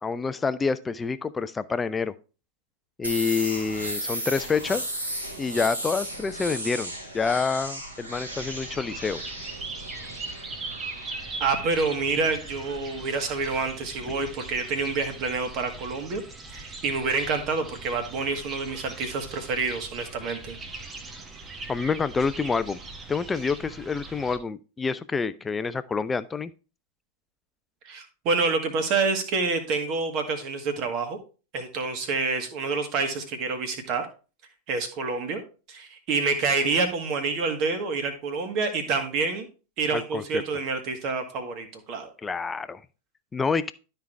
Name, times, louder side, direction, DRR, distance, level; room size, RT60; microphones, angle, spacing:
voice 1, 0.0-2.1 3.0-4.8 5.4-9.2 21.7-22.8 23.1-26.5 39.9-40.4 42.2-42.8 43.3-43.7, left 5 dB, 15° left, 14 dB, 0.5 m, -27 dB
sound 1, 3.0-14.7, right 1 dB, 75° right, 2.5 m, -36 dB
sound 2, 8.3-24.4, right 3 dB, 20° right, 1.1 m, -40 dB
voice 2, 11.4-16.2 16.5-20.6 27.8-31.2 31.5-34.1 34.7-35.4 35.7-39.5 39.8-42.1, right 4 dB, 40° right, 6 dB, 1.8 m, -27 dB
12.5 x 4.6 x 3.4 m, 0.35 s
figure-of-eight pair, 90°, 0 cm